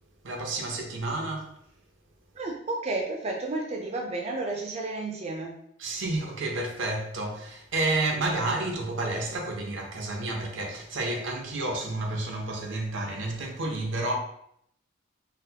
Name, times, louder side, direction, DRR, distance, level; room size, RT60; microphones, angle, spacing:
voice 1, 0.2-1.6 5.8-14.2, right 2 dB, 80° right, 0.6 m, -30 dB
voice 2, 2.3-5.6, right 2 dB, 35° right, 0.4 m, -32 dB
3.9 x 2.0 x 2.7 m
head